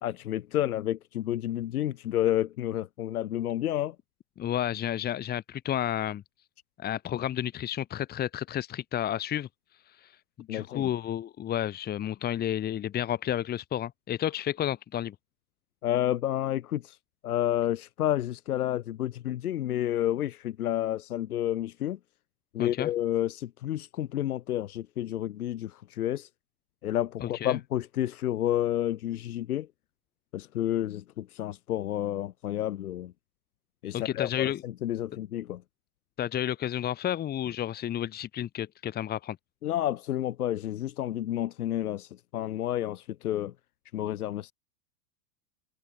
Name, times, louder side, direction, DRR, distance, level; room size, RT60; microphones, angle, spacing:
voice 1, 0.0-4.0 10.5-10.9 15.8-17.0 17.2-22.0 22.5-26.3 26.8-29.7 30.3-33.1 33.8-35.6 39.6-43.5 43.9-44.5, left 12 dB, 80° left, 2.4 m, -30 dB
voice 2, 4.4-6.2 6.8-9.5 10.0-15.1 22.6-22.9 27.2-27.6 33.9-34.6 36.2-39.4, left 11 dB, 20° left, 3.3 m, -31 dB
supercardioid pair, 150°, 44 cm